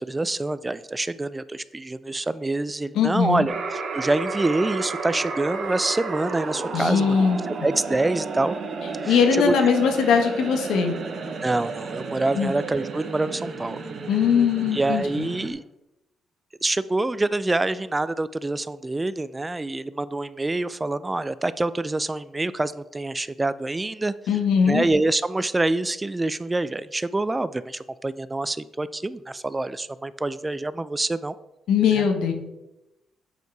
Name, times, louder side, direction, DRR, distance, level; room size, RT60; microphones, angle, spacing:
voice 1, 0.0-7.2 7.6-8.6 9.0-9.2 9.4-9.5 11.4-13.8 14.7-15.6 16.6-24.1 24.6-31.3, right 2 dB, 15° right, 16 dB, 0.3 m, -26 dB
voice 2, 2.9-3.5 6.7-7.4 9.0-10.9 12.3-12.5 14.1-15.3 24.3-24.8 31.7-32.3, left 6 dB, 80° left, 5 dB, 1.2 m, -20 dB
sound 1, 3.5-15.5, right 4 dB, 55° right, 1.0 m, -32 dB
8.1 x 4.6 x 4.6 m, 0.94 s
cardioid pair, 90°, 0 cm